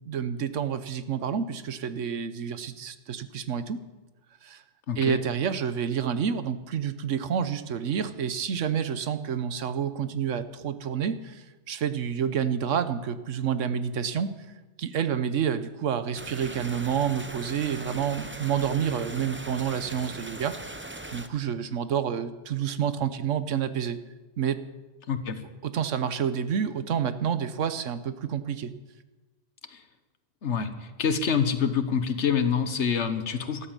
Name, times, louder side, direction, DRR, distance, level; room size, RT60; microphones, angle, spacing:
voice 1, 0.1-3.8 4.4-4.6 5.0-14.3 14.8-20.8 21.1-24.0 24.4-24.6 25.6-28.7, right 8 dB, 85° right, 12 dB, 1.2 m, -29 dB
voice 2, 4.9-5.2 25.1-25.4 29.7-29.8 30.4-33.7, left 6 dB, 70° left, 10 dB, 1.4 m, -26 dB
sound 1, 16.1-21.3, right 2 dB, 15° right, 0.6 m, -40 dB
13.5 x 12.5 x 7.4 m, 1.2 s
omnidirectional pair, 1.3 m